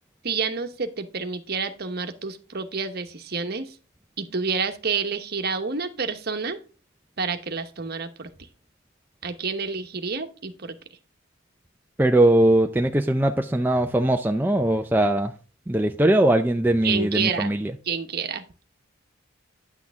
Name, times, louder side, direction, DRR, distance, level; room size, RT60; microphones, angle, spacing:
voice 1, 0.2-3.7 4.2-6.6 7.2-8.3 9.2-10.8 16.8-17.5 17.8-18.4, right 5 dB, 50° right, 1.0 m, -29 dB
voice 2, 12.0-15.3 15.7-17.7, right 1 dB, 10° right, 0.4 m, -20 dB
9.9 x 6.4 x 3.5 m
head